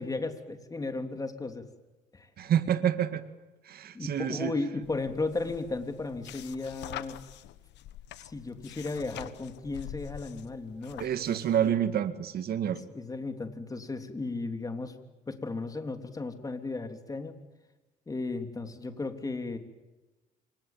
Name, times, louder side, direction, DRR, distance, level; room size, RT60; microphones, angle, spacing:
voice 1, 0.0-1.7 2.1-2.3 3.9-7.2 8.2-11.8 12.6-14.9 15.3-17.4 18.1-19.6, left 3 dB, 20° left, 7 dB, 3.2 m, -35 dB
voice 2, 2.4-3.2 3.7-4.5 11.0-12.8, right 9 dB, 60° right, 11 dB, 2.1 m, -28 dB
Flipping book, 4.8-11.6, left 13 dB, 80° left, 1.4 m, -46 dB
27.5 x 26.0 x 7.5 m, 1.1 s
cardioid pair, 105°, 18 cm